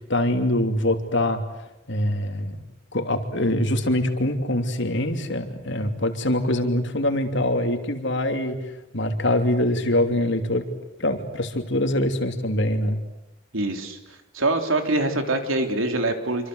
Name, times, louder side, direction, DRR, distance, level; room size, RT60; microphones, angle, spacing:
voice 1, 0.1-1.4 1.9-2.6 2.9-10.7 11.0-13.0, left 1 dB, 60° left, 6 dB, 3.0 m, -24 dB
voice 2, 13.5-14.0 14.3-16.5, right 2 dB, 75° right, 5 dB, 3.6 m, -24 dB
27.0 x 25.5 x 8.0 m, 0.93 s
head